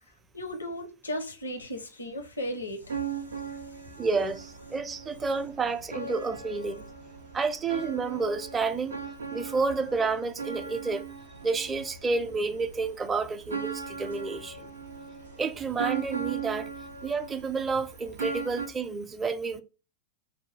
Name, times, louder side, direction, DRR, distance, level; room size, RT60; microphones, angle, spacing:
voice 1, 0.3-3.0, equal, 75° left, 0.7 m, -35 dB
sound 1, 2.8-18.7, right 6 dB, 75° right, 0.5 m, -38 dB
voice 2, 4.0-6.9 7.3-9.0 9.3-11.0 11.4-14.7 15.4-16.7 17.0-19.6, right 4 dB, 15° right, 0.5 m, -30 dB
4.6 x 2.2 x 3.1 m
figure-of-eight pair, 95°, 0 cm